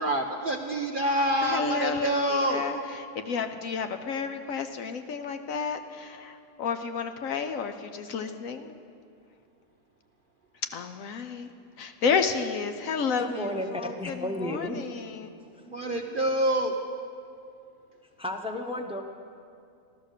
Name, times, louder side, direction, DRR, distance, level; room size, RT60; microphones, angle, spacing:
voice 1, 0.0-2.7 15.7-16.7, right 1 dB, 45° right, 3 dB, 0.7 m, -26 dB
voice 2, 1.4-8.8 10.6-11.5 11.8-15.3, left 5 dB, 65° left, 8 dB, 1.0 m, -31 dB
voice 3, 13.2-14.8 15.5-15.7 18.2-19.0, left 1 dB, 5° right, 5 dB, 0.6 m, -33 dB
14.5 x 13.0 x 6.6 m, 2.4 s
omnidirectional pair, 1.7 m